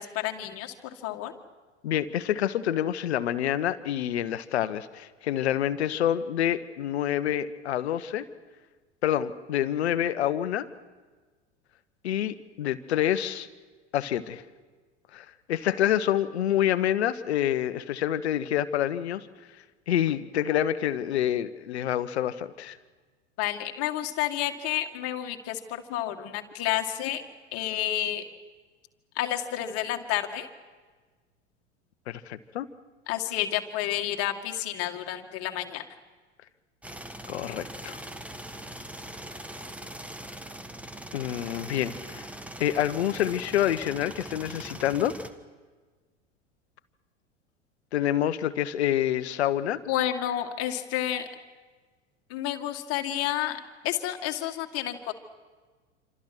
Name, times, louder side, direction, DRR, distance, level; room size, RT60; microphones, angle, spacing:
voice 1, 0.0-1.3 23.4-27.2 27.5-28.2 29.2-30.5 33.1-35.8 49.9-51.3 52.3-55.1, left 12 dB, 40° left, 4 dB, 2.0 m, -30 dB
voice 2, 1.8-8.2 9.0-10.7 12.0-13.5 13.9-14.4 15.1-19.3 19.9-22.8 32.1-32.7 37.3-38.0 41.1-42.2 42.6-45.1 47.9-49.8, left 11 dB, 60° left, 14 dB, 1.2 m, -27 dB
sound 1, 36.8-45.3, right 1 dB, 5° right, 1.3 m, -41 dB
27.0 x 26.5 x 6.2 m, 1.4 s
figure-of-eight pair, 85°, 36 cm